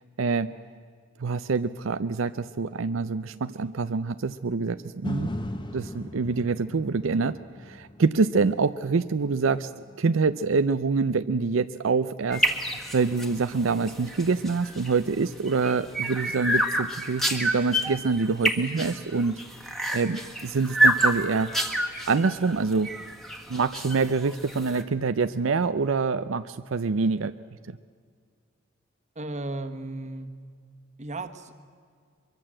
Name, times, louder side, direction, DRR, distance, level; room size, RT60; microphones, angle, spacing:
voice 1, 0.2-0.5 1.2-5.3 5.7-7.4 7.6-9.7 10.0-19.4 19.9-21.5 22.1-22.9 23.5-27.3, right 4 dB, 80° right, 11 dB, 0.6 m, -26 dB
sound 1, 5.0-13.2 13.7-13.8, left 1 dB, 25° left, 1.3 m, -40 dB
sound 2, 12.3-24.8, right 1 dB, ahead, 1.7 m, -28 dB
voice 2, 29.1-30.3 31.0-31.5, right 2 dB, 35° right, 8 dB, 1.4 m, -35 dB
23.0 x 23.0 x 7.7 m, 2.1 s
head